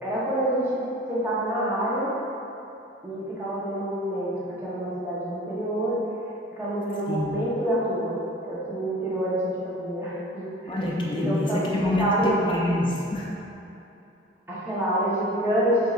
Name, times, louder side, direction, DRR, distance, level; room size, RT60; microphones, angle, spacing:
voice 1, 0.0-2.1 3.0-6.0 6.6-10.8 11.1-12.4 14.5-15.9, right 1 dB, 10° right, -9 dB, 0.8 m, -27 dB
voice 2, 7.1-7.4 10.7-13.3, left 1 dB, 25° left, -3 dB, 0.5 m, -26 dB
6.0 x 2.7 x 2.4 m, 2.9 s
head